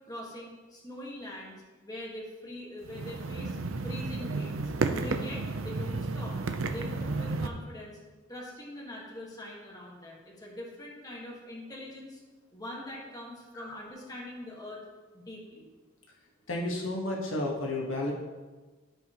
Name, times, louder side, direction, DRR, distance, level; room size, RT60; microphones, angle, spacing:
voice 1, 0.1-1.6 1.8-3.6 3.8-6.4 6.7-8.0 8.3-12.2 12.5-14.8 15.1-15.7, left 1 dB, 20° left, -3 dB, 1.7 m, -43 dB
sound 1, 2.8-7.5, right 3 dB, 90° right, 0.6 m, -32 dB
voice 2, 16.5-18.1, left 1 dB, 75° left, -2 dB, 1.4 m, -32 dB
14.0 x 4.9 x 3.0 m, 1.3 s
head